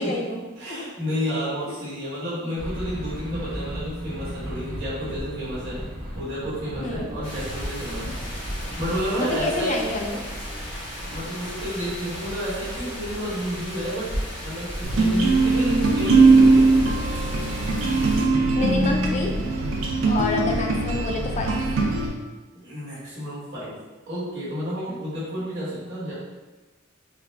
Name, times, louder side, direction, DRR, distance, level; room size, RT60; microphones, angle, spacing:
voice 1, 0.0-0.4 0.7-0.8 6.8-7.1 8.1-8.2 9.2-10.3 18.6-19.3 20.0-21.6 24.9-25.0, left 2 dB, 35° left, 1 dB, 0.4 m, -28 dB
voice 2, 0.6-5.8 6.1-8.2 8.8-9.8 11.0-16.8 20.1-20.5 22.5-23.7 24.1-26.1, equal, 60° right, -9 dB, 1.5 m, -31 dB
sound 1, 2.6-9.0, equal, 45° right, 0.8 m, -35 dB
sound 2, 7.2-18.2, equal, 5° left, 1.3 m, -34 dB
sound 3, 14.8-22.1, right 3 dB, 80° right, 0.6 m, -20 dB
3.6 x 2.3 x 3.3 m, 1.2 s
head